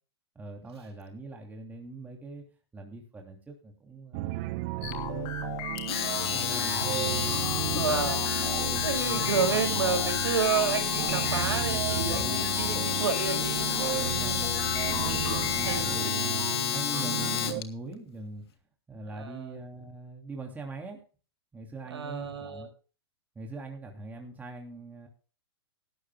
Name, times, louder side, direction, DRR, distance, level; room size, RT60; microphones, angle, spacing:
voice 1, 0.3-2.4 2.7-5.8 6.3-7.1 8.7-9.0 15.5-15.8 16.7-18.4 18.9-21.0 21.5-22.7 23.3-25.1, right 2 dB, 10° right, 2 dB, 3.0 m, -42 dB
sound 1, 4.1-17.6, right 17 dB, 40° right, 0.8 m, -34 dB
sound 2, 4.8-16.0, left 9 dB, 35° left, 3.1 m, -39 dB
Domestic sounds home sounds, 5.8-17.6, left 9 dB, 65° left, 2.1 m, -30 dB
voice 2, 7.7-8.3 8.8-14.4 15.0-16.1 19.1-19.6 21.9-22.7, right 5 dB, 75° right, 5 dB, 4.9 m, -31 dB
18.0 x 13.0 x 2.3 m, 0.37 s
hypercardioid pair, 125°, 14 cm